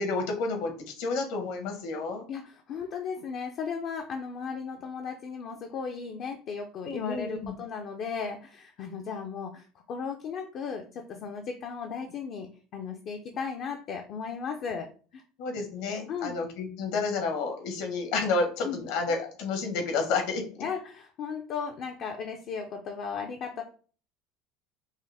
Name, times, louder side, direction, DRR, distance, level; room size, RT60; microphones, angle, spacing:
voice 1, 0.0-2.2 6.8-7.5 15.4-20.4, left 3 dB, 65° left, 3 dB, 1.3 m, -30 dB
voice 2, 2.3-12.5 12.7-14.9 15.1-15.2 16.1-16.4 18.6-18.9 20.6-23.6, left 6 dB, 40° left, 3 dB, 0.5 m, -36 dB
5.4 x 2.0 x 3.4 m, 0.40 s
cardioid pair, 160°, 0 cm